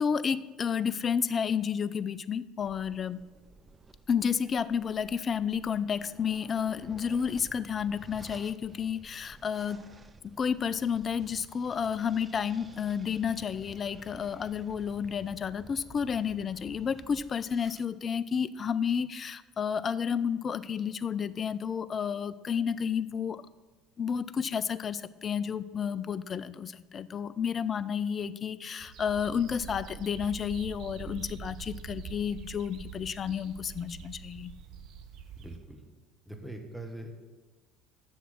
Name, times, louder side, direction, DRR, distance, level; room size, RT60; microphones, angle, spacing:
voice 1, 0.0-3.2 4.1-9.8 10.2-23.4 24.0-34.5, left 7 dB, 35° left, 15 dB, 0.4 m, -31 dB
sound 1, 2.6-17.9, right 3 dB, 25° right, 0.6 m, -53 dB
sound 2, 28.8-35.6, right 7 dB, 50° right, 0.8 m, -45 dB
voice 2, 35.4-35.8 36.3-37.1, right 1 dB, 5° right, 2 dB, 1.4 m, -42 dB
7.2 x 6.9 x 7.6 m, 1.2 s
figure-of-eight pair, 60°, 0 cm